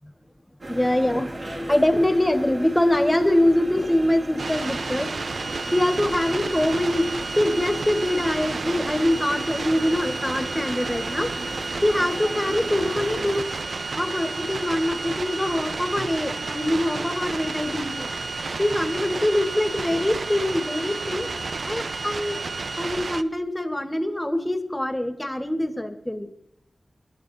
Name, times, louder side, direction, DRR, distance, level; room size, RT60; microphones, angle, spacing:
sound 1, 0.6-13.4, right 1 dB, 50° right, 2.1 m, -36 dB
voice 1, 0.7-5.1 5.7-7.1 7.4-11.3 11.8-13.5 13.9-18.1 18.6-21.3 21.6-22.4 22.8-26.3, left 1 dB, 10° left, 7 dB, 1.5 m, -24 dB
sound 2, 4.4-23.2, right 3 dB, 80° right, 0.7 m, -31 dB
26.0 x 12.0 x 2.7 m, 0.78 s
wide cardioid pair, 85°, 0 cm